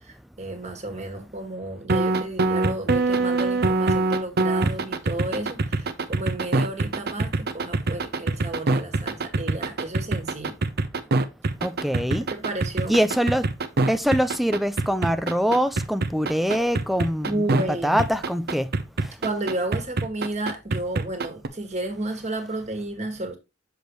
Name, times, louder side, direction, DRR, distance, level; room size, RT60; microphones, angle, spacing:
voice 1, 0.1-10.6 12.3-13.0 17.2-18.0 19.2-23.4, right 2 dB, 35° right, 1.7 m, -32 dB
sound 1, 1.9-17.6 18.0-21.5, right 3 dB, 55° right, 0.7 m, -24 dB
voice 2, 11.6-12.3 12.9-13.5 13.9-18.7, equal, ahead, 0.4 m, -24 dB
6.8 x 6.1 x 3.1 m
head